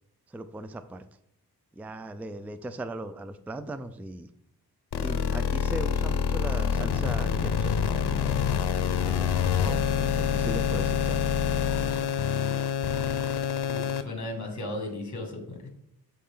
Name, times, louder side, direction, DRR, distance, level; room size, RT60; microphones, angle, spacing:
voice 1, 0.3-1.1 1.8-4.3 5.0-7.7 8.0-8.5 9.0-11.2 11.8-12.7, right 1 dB, 5° right, 11 dB, 0.3 m, -39 dB
sound 1, 4.9-14.0, left 8 dB, 80° left, 0.7 m, -26 dB
voice 2, 13.7-15.7, left 2 dB, 45° left, 2 dB, 2.1 m, -36 dB
12.5 x 4.3 x 3.7 m, 0.78 s
wide cardioid pair, 145°, 39 cm